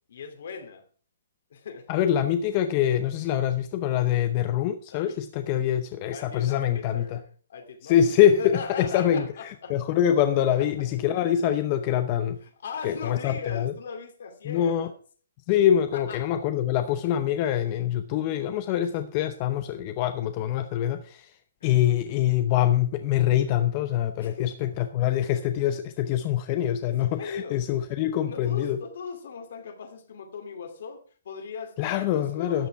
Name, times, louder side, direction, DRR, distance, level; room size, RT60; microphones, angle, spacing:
voice 1, 0.1-0.8 1.5-2.2 4.9-5.3 6.1-7.2 7.5-8.0 8.4-9.7 10.6-10.7 12.4-14.9 15.9-16.2 17.4-17.5 21.6-21.7 24.2-24.7 26.9-27.6 28.2-32.7, left 5 dB, 65° left, 6 dB, 2.5 m, -39 dB
voice 2, 1.9-7.2 7.8-12.4 12.8-13.7 14.4-14.9 15.5-21.4 21.6-28.8 31.8-32.7, left 10 dB, 30° left, 9 dB, 0.7 m, -24 dB
13.0 x 8.3 x 4.7 m, 0.42 s
hypercardioid pair, 160°, 0 cm